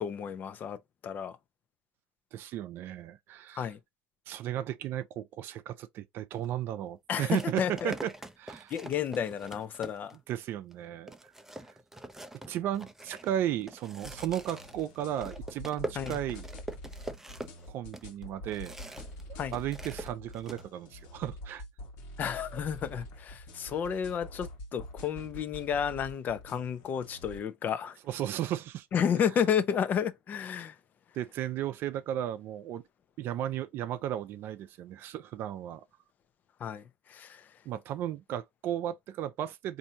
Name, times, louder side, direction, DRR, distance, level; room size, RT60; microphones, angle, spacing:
voice 1, 0.0-1.4 3.5-3.8 7.1-7.9 8.7-10.2 16.0-16.2 19.4-19.5 22.2-28.0 28.9-30.8 36.6-37.5, left 8 dB, 40° left, 0.6 m, -32 dB
voice 2, 2.3-3.7 4.3-8.1 8.4-8.7 10.3-11.3 12.5-16.4 17.7-19.0 19.5-21.6 28.1-28.9 31.1-32.8 33.2-35.8 37.6-39.8, right 11 dB, 55° right, 0.5 m, -35 dB
sound 1, 6.3-6.5 7.3-10.3 10.7-10.8 11.1-19.2 19.5-20.6, right 2 dB, 10° right, 0.6 m, -44 dB
sound 2, 14.0-27.4, left 1 dB, 65° left, 1.2 m, -46 dB
4.2 x 2.7 x 2.7 m
supercardioid pair, 95°, 4 cm